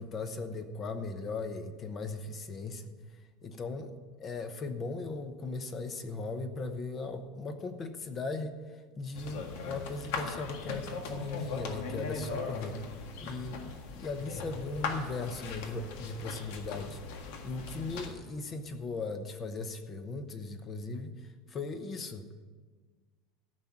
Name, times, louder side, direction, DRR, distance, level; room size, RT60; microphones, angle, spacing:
voice 1, 0.0-2.9 3.4-8.6 9.0-12.8 13.2-17.0 17.4-22.3, left 3 dB, 25° left, 9 dB, 0.9 m, -38 dB
sound 1, 9.1-18.1, left 4 dB, 75° left, 1.7 m, -39 dB
14.0 x 5.9 x 8.6 m, 1.5 s
cardioid pair, 160°, 0 cm